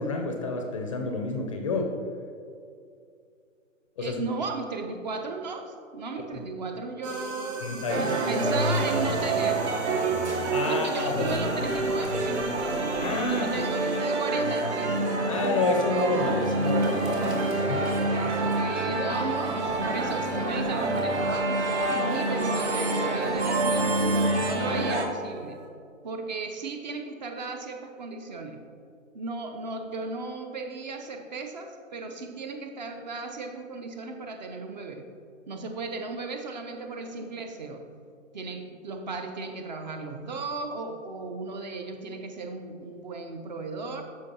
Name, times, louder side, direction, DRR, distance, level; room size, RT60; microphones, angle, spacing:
voice 1, 0.0-1.9 4.0-4.2 7.6-8.2 10.5-11.4 13.0-13.6 15.3-17.9, left 3 dB, 25° left, 2 dB, 0.5 m, -29 dB
voice 2, 4.0-10.3 10.6-12.5 13.3-15.1 18.5-24.1 24.3-25.6 26.0-28.6 29.1-35.1 35.5-37.9 38.3-44.0, right 3 dB, 35° right, 5 dB, 0.6 m, -36 dB
sound 1, 7.0-25.7, right 2 dB, 75° right, 1.5 m, -43 dB
sound 2, 7.9-25.0, right 2 dB, 60° right, 1.1 m, -27 dB
12.5 x 4.7 x 2.8 m, 2.4 s
figure-of-eight pair, 130°, 39 cm